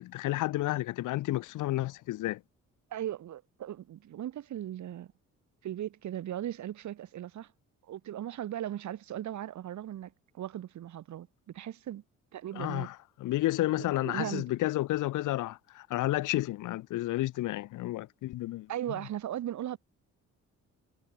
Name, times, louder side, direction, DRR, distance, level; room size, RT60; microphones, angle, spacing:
voice 1, 0.0-2.4 12.5-18.7, left 16 dB, 85° left, 1.5 m, -31 dB
voice 2, 2.9-5.1 5.6-7.5 7.9-12.0 12.3-12.9 13.8-14.4 18.7-19.8, right 11 dB, 70° right, 2.7 m, -38 dB
cardioid pair, 90°, 30 cm